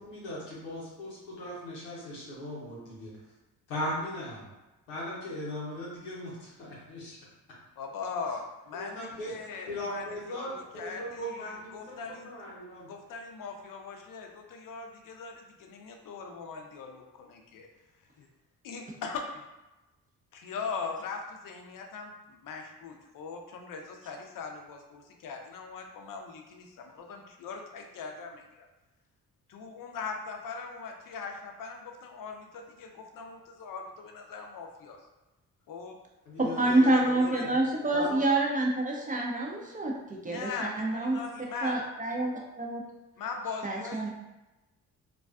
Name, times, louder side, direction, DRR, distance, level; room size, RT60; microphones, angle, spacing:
voice 1, 0.0-3.1 3.7-4.4 4.9-7.2 8.7-9.3 9.7-12.9 36.3-37.6 37.9-38.2, left 1 dB, 90° left, -6 dB, 0.8 m, -38 dB
voice 2, 7.8-12.3 12.9-17.7 18.2-18.3 18.6-19.4 20.3-28.7 29.5-35.0 35.7-36.0 36.6-37.4 40.3-41.8 43.2-44.1, left 5 dB, 50° left, 3 dB, 0.6 m, -40 dB
voice 3, 36.4-41.2 41.6-42.3 42.6-42.8 43.6-44.1, right 2 dB, 20° right, -1 dB, 0.5 m, -27 dB
2.3 x 2.3 x 2.3 m, 1.0 s
hypercardioid pair, 45°, 43 cm